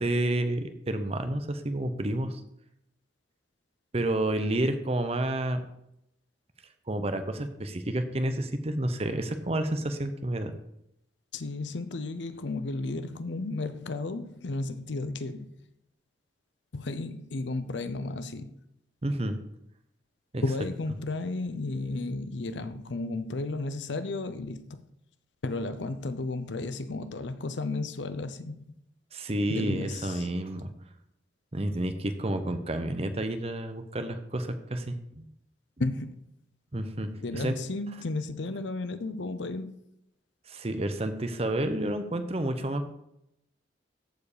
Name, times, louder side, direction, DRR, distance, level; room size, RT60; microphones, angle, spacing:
voice 1, 0.0-2.4 3.9-5.6 6.9-10.5 19.0-19.4 20.3-20.4 29.1-30.7 31.5-35.3 36.7-37.6 40.5-42.9, right 1 dB, 35° right, 0.8 m, -30 dB
voice 2, 11.3-15.5 16.7-18.5 20.4-24.8 25.4-28.7 29.5-30.3 35.8-36.2 37.1-39.8, left 2 dB, 75° left, 0.7 m, -33 dB
14.0 x 4.8 x 5.0 m
head